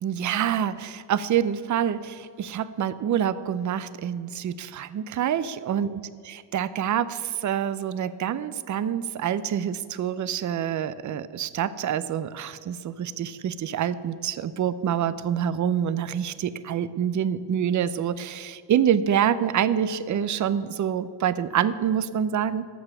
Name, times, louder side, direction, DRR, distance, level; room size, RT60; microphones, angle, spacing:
voice 1, 0.0-6.0 6.5-22.7, right 9 dB, 40° right, 15 dB, 0.5 m, -26 dB
13.5 x 5.6 x 6.0 m, 2.3 s
cardioid pair, 95°, 46 cm